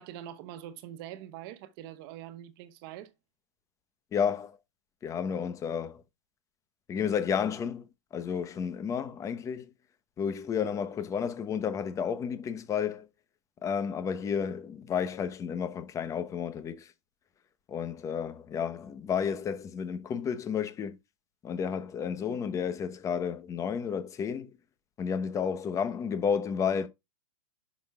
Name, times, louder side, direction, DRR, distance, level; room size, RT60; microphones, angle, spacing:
voice 1, 0.0-3.1, right 11 dB, 45° right, 1.0 m, -44 dB
voice 2, 4.1-4.6 5.0-6.0 6.9-7.9 8.1-9.7 10.2-13.1 13.6-16.9 17.7-20.9 21.4-24.5 25.0-26.9, left 7 dB, 20° left, 0.9 m, -31 dB
10.0 x 6.2 x 2.3 m
supercardioid pair, 145°, 16 cm